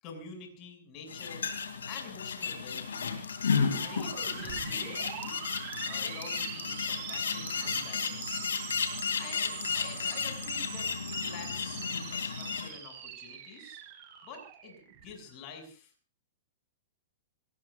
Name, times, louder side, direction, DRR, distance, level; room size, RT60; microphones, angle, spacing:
voice 1, 0.0-1.5 1.8-3.2 3.8-5.4 5.8-8.5 9.2-13.8 14.2-15.9, left 5 dB, 40° left, 3 dB, 7.0 m, -47 dB
sound 1, 1.1-12.7, left 6 dB, 85° left, 2.9 m, -33 dB
sound 2, 3.7-15.4, right 9 dB, 45° right, 5.6 m, -43 dB
27.0 x 18.5 x 2.6 m, 0.37 s
hypercardioid pair, 120°, 0 cm